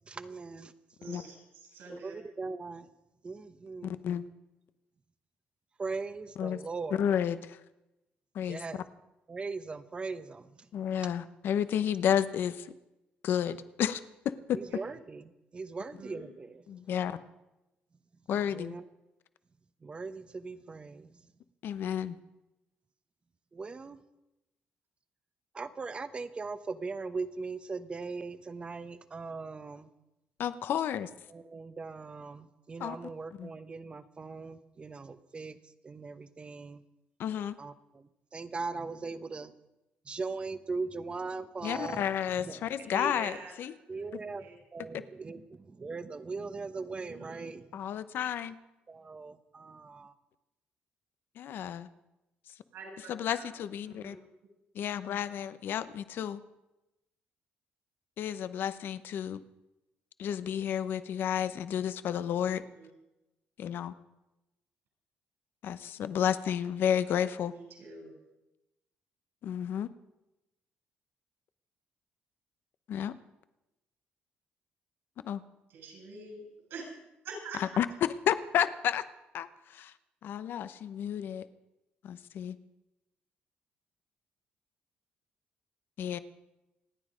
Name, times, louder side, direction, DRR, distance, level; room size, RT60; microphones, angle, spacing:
voice 1, 0.1-0.7 1.9-2.9 3.2-4.0 5.8-7.0 8.5-8.8 9.3-10.7 14.5-16.6 18.5-18.8 19.8-21.1 23.5-24.0 25.5-29.9 31.3-35.6 35.8-36.8 37.6-39.5 40.1-42.1 42.4-42.6 43.9-47.7 48.9-50.1, right 4 dB, 25° right, 12 dB, 0.9 m, -40 dB
voice 2, 1.0-2.2 14.7-14.8 16.0-16.3 42.9-43.5 43.9-44.0 44.4-44.6 46.9-47.5 52.7-53.5 53.9-54.1 62.5-62.9 67.5-68.1 75.7-76.9 77.2-77.6, right 3 dB, 75° right, 1 dB, 7.0 m, -45 dB
voice 3, 3.8-4.2 6.4-6.6 6.9-7.6 8.3-8.8 10.7-12.7 13.2-14.6 16.7-17.2 18.3-18.8 21.6-22.2 30.4-31.1 32.8-33.1 33.4-33.5 37.2-37.6 41.6-43.7 44.9-45.0 47.7-48.6 51.4-51.9 53.1-54.2 54.7-56.4 58.2-59.4 60.2-62.6 63.6-63.9 65.6-67.5 69.4-69.9 72.9-73.2 75.2-75.4 77.5-79.0 79.3-79.9 80.2-81.5 82.0-82.6 86.0-86.2, left 9 dB, 65° left, 13 dB, 0.9 m, -31 dB
27.5 x 9.7 x 5.1 m, 0.97 s
cardioid pair, 110°, 4 cm